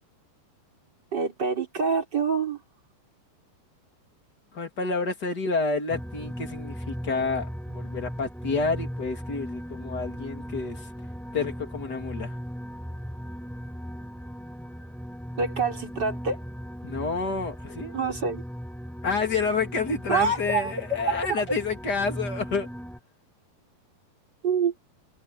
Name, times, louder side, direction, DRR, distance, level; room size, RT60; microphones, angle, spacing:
voice 1, 1.1-2.6 15.4-16.4 17.9-18.4 20.1-21.2 24.4-24.7, right 5 dB, 25° right, 4.8 m, -26 dB
voice 2, 4.5-10.9 11.3-12.3 16.8-18.0 19.0-22.7, left 4 dB, 25° left, 3.1 m, -29 dB
sound 1, 5.9-23.0, equal, ahead, 5.2 m, -38 dB
omnidirectional pair, 4.8 m